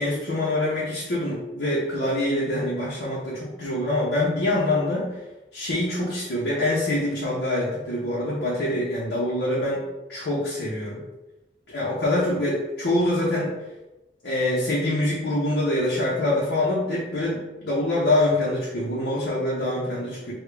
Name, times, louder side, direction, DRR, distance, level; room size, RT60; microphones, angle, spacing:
voice 1, 0.0-5.1 5.5-9.8 10.1-11.0 11.7-13.5 14.2-20.3, left 1 dB, 85° left, -8 dB, 0.8 m, -25 dB
3.5 x 2.3 x 3.3 m, 1.0 s
head